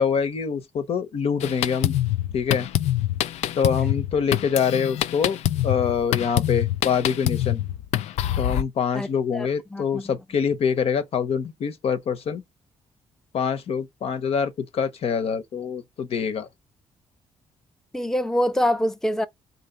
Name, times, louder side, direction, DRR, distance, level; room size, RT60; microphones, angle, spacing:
voice 1, 0.0-1.9 2.3-2.7 3.6-5.4 5.6-7.6 8.4-12.4 13.3-16.5, left 6 dB, 65° left, 0.8 m, -25 dB
Drum kit, 1.4-8.6, left 13 dB, 80° left, 0.4 m, -25 dB
voice 2, 9.3-10.2 17.9-19.3, equal, 5° left, 0.6 m, -25 dB
4.0 x 3.1 x 4.2 m
cardioid pair, 75°, 11 cm